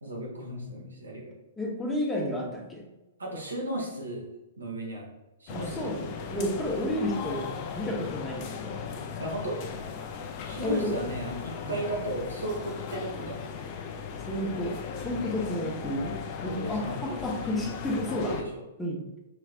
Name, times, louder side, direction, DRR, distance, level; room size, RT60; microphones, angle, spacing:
voice 1, 0.0-1.3 3.2-4.2 4.6-5.1 5.4-6.0 9.2-9.6 10.4-13.5 16.4-17.2 18.2-18.6, right 1 dB, 80° right, -1 dB, 1.3 m, -35 dB
voice 2, 1.6-2.9 5.5-7.5 7.8-8.8 10.6-11.0 11.6-11.8 14.3-16.2 16.4-18.3 18.8-19.0, left 1 dB, 5° left, -2 dB, 1.1 m, -31 dB
sound 1, 5.5-18.4, left 6 dB, 40° left, 0.5 m, -37 dB
5.7 x 3.1 x 2.5 m, 1.0 s
figure-of-eight pair, 110°, 0 cm